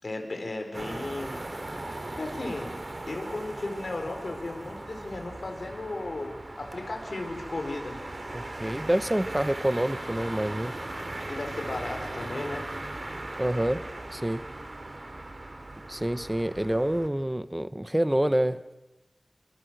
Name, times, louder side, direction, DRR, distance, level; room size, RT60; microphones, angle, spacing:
voice 1, 0.0-1.4 2.2-2.8 3.1-8.0 11.3-12.7, left 2 dB, 75° left, 3 dB, 4.8 m, -35 dB
sound 1, 0.7-17.1, right 2 dB, 50° right, 3.0 m, -38 dB
voice 2, 8.3-10.7 13.4-13.8 14.1-14.4 15.9-18.6, right 1 dB, 15° right, 13 dB, 0.8 m, -27 dB
28.5 x 26.0 x 6.2 m, 1.1 s
wide cardioid pair, 65°, 0 cm